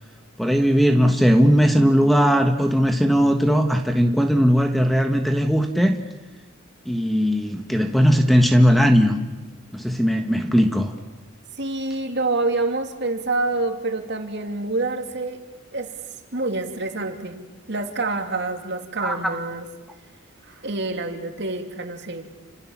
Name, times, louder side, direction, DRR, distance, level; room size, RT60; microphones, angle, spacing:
voice 1, 0.4-6.0 6.8-9.2 9.7-10.9 19.0-19.2, equal, ahead, 5 dB, 1.3 m, -18 dB
voice 2, 11.6-15.4 15.7-15.9 16.3-19.7 20.4-22.3, right 2 dB, 55° right, 5 dB, 2.9 m, -27 dB
30.0 x 26.0 x 7.3 m, 1.2 s
head